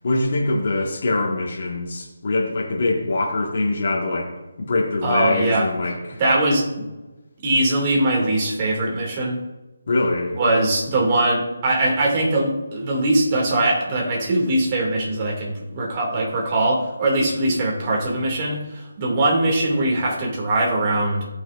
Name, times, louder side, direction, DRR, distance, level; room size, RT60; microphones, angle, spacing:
voice 1, 0.0-4.3 4.6-6.2 9.9-10.4, left 2 dB, 55° left, -3 dB, 1.7 m, -23 dB
voice 2, 5.0-5.7 6.2-6.9 7.4-9.4 10.3-21.3, right 1 dB, 30° right, -2 dB, 2.4 m, -21 dB
16.5 x 6.1 x 2.6 m, 1.1 s
figure-of-eight pair, 155°, 0 cm